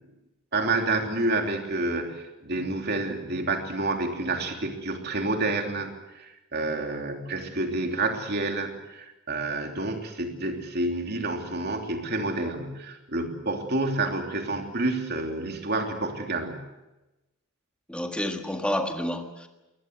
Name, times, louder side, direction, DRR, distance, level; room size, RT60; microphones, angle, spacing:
voice 1, 0.5-16.7, right 2 dB, 50° right, 3 dB, 3.2 m, -29 dB
voice 2, 17.9-19.5, left 1 dB, 5° left, 4 dB, 1.7 m, -29 dB
22.5 x 19.5 x 8.2 m, 1.0 s
head